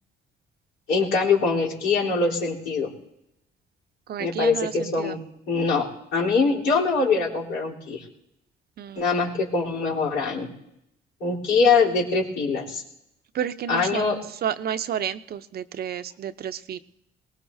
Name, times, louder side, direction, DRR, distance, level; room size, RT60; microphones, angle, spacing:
voice 1, 0.9-2.9 4.2-5.2 5.5-8.0 9.0-10.5 11.2-12.8 13.7-14.2, left 4 dB, 90° left, -5 dB, 3.6 m, -23 dB
voice 2, 4.1-5.2 8.8-9.3 13.3-14.0 14.4-16.8, right 9 dB, 60° right, 12 dB, 0.7 m, -31 dB
22.5 x 19.0 x 2.7 m, 0.81 s
cardioid pair, 85°, 18 cm